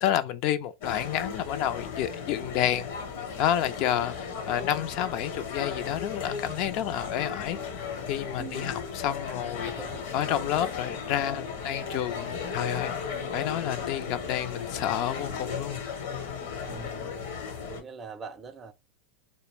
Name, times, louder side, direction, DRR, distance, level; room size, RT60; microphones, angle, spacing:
voice 1, 0.0-2.9 3.4-7.7 8.1-9.7 10.1-12.9 13.3-15.8, left 11 dB, 55° left, 0.3 m, -29 dB
sound 1, 0.8-17.8, left 6 dB, 70° left, 0.9 m, -36 dB
voice 2, 8.4-8.8 9.6-10.0 16.6-17.2 17.7-18.7, right 5 dB, 25° right, 0.4 m, -42 dB
2.3 x 2.0 x 3.2 m
hypercardioid pair, 105°, 0 cm